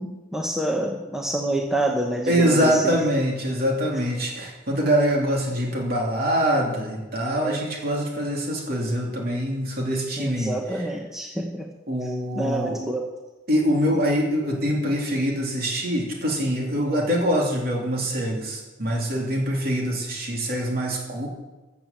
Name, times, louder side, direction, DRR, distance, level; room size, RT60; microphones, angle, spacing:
voice 1, 0.0-3.0 7.4-7.6 10.2-11.7 12.0-13.1, right 1 dB, ahead, 1 dB, 1.0 m, -27 dB
voice 2, 2.3-10.6 11.9-12.8 13.5-21.3, equal, 50° right, -1 dB, 3.2 m, -24 dB
14.0 x 7.1 x 7.4 m, 1.1 s
head